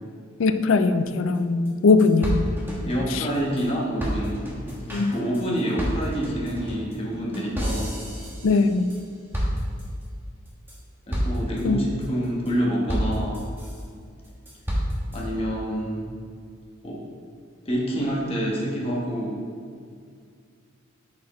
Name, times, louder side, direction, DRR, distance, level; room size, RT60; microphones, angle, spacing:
voice 1, 0.4-2.4 3.1-3.3 4.9-5.1 8.4-8.9 11.6-11.8, left 4 dB, 75° left, 10 dB, 0.4 m, -20 dB
sound 1, 1.3-1.4 1.7-1.8 2.0-3.7 4.0-9.0 9.3-10.0 10.5-10.8 11.1-11.6 12.0-12.5 12.9-13.8 14.2-15.2, equal, 10° right, 1.1 m, -30 dB
voice 2, 2.8-4.4 4.9-7.9 11.1-13.4 15.1-16.1 16.8-17.0 17.6-19.4, equal, 30° left, -4 dB, 1.2 m, -27 dB
8.3 x 4.7 x 3.1 m, 2.2 s
head